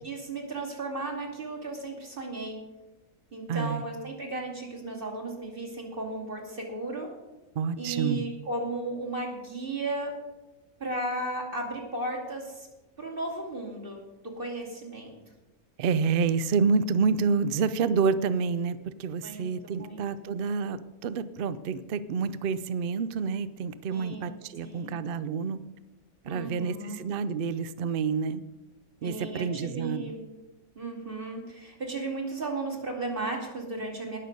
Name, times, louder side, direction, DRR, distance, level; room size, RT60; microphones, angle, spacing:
voice 1, 0.0-2.6 3.3-7.1 7.8-10.1 10.8-12.7 13.0-15.2 19.2-20.1 23.9-25.1 26.3-27.0 29.0-30.2 30.8-34.2, right 2 dB, 35° right, 0 dB, 2.7 m, -35 dB
voice 2, 3.5-3.8 7.5-8.3 15.8-25.6 26.2-28.4 29.0-30.0, right 5 dB, 60° right, 14 dB, 0.5 m, -28 dB
19.5 x 6.6 x 5.3 m, 1.1 s
omnidirectional pair, 1.6 m